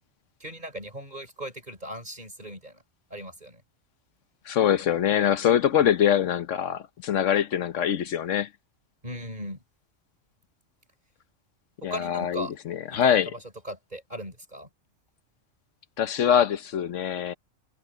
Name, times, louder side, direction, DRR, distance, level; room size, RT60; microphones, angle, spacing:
voice 1, 0.4-2.8 3.1-3.6 9.0-9.6 11.8-12.5 12.9-13.4 13.6-14.7, equal, 35° right, 6.2 m, -38 dB
voice 2, 4.5-8.5 11.8-13.3 16.0-17.3, left 9 dB, 75° left, 1.1 m, -24 dB
omnidirectional pair, 1.3 m